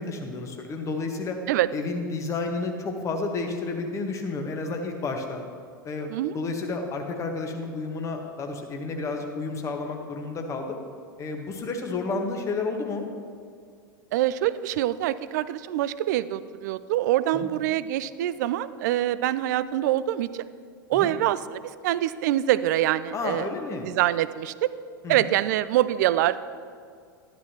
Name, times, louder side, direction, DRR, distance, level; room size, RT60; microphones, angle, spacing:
voice 1, 0.0-1.4 1.7-5.4 5.8-6.1 6.3-10.8 11.2-13.1 17.3-17.5 20.9-21.1 23.1-23.9 25.0-25.3, left 3 dB, 25° left, 4 dB, 1.3 m, -31 dB
voice 2, 14.1-20.5 20.9-23.5 23.8-24.7 25.1-26.4, right 13 dB, 55° right, 16 dB, 0.4 m, -25 dB
12.0 x 10.5 x 2.9 m, 2.2 s
figure-of-eight pair, 90°, 11 cm